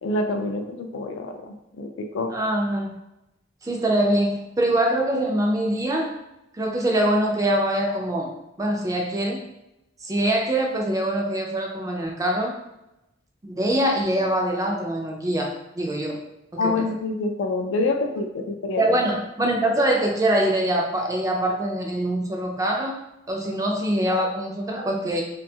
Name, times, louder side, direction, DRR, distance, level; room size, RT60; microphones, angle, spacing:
voice 1, 0.0-2.3 16.6-19.0, left 2 dB, 75° left, 4 dB, 0.4 m, -27 dB
voice 2, 2.3-2.9 3.6-6.2 6.6-8.3 8.6-9.4 10.0-12.6 13.4-16.2 16.5-16.8 18.8-23.0 23.3-25.2, right 1 dB, 15° right, 0 dB, 0.3 m, -24 dB
2.6 x 2.2 x 2.7 m, 0.91 s
head